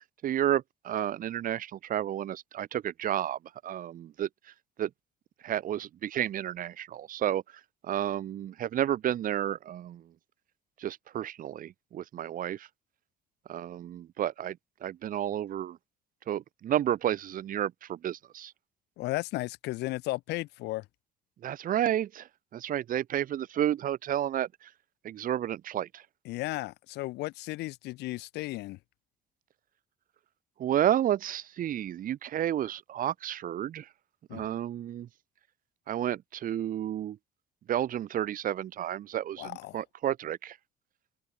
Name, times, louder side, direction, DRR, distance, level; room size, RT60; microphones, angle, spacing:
voice 1, 0.2-4.3 4.8-4.9 5.4-7.4 7.8-10.0 10.8-12.7 13.5-15.8 16.3-18.5 21.4-22.3 22.5-24.7 25.0-26.0 30.6-33.9 34.3-35.1 35.9-37.2 37.7-40.6, right 11 dB, 55° right, 1.2 m, -31 dB
voice 2, 19.0-20.8 26.2-28.8 34.3-34.5 39.4-39.8, left 19 dB, 85° left, 0.9 m, -35 dB
open air
cardioid pair, 110°, 17 cm